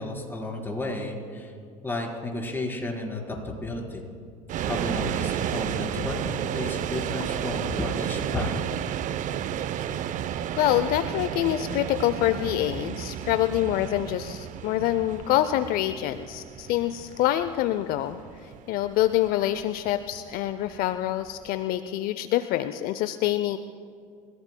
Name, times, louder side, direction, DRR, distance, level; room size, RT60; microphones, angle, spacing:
voice 1, 0.0-1.5 1.8-4.1 4.6-8.6, left 2 dB, 10° left, -1 dB, 4.4 m, -32 dB
sound 1, 4.5-21.5, right 10 dB, 45° right, 0.7 m, -32 dB
voice 2, 10.6-18.2 18.7-23.6, left 13 dB, 60° left, 12 dB, 0.6 m, -26 dB
28.5 x 16.5 x 2.3 m, 2.3 s
hypercardioid pair, 80°, 18 cm